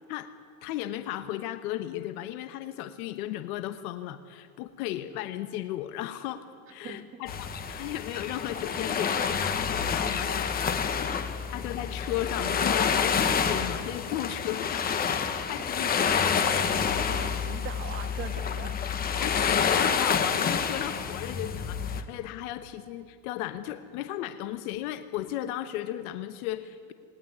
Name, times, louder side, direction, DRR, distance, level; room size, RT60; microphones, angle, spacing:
voice 1, 0.6-11.1 11.5-14.9 15.3-16.5 19.2-26.9, left 13 dB, 65° left, 10 dB, 1.2 m, -35 dB
voice 2, 6.8-7.2 17.1-18.8, right 7 dB, 25° right, 7 dB, 1.6 m, -41 dB
sound 1, 7.3-22.0, left 6 dB, 20° left, 1.1 m, -28 dB
19.0 x 19.0 x 9.8 m, 2.5 s
supercardioid pair, 160°, 47 cm